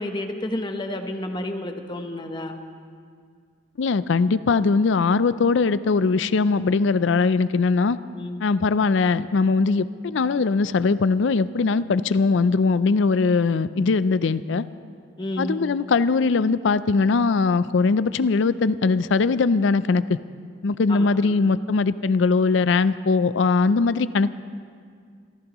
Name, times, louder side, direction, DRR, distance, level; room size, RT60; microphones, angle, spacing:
voice 1, 0.0-2.6 8.1-8.4 15.2-15.5 20.9-21.4, left 1 dB, 25° left, 5 dB, 1.0 m, -31 dB
voice 2, 3.8-8.0 8.4-14.6 15.4-20.2 20.6-24.3, left 4 dB, 65° left, 15 dB, 0.4 m, -21 dB
27.5 x 15.0 x 3.0 m, 2.1 s
head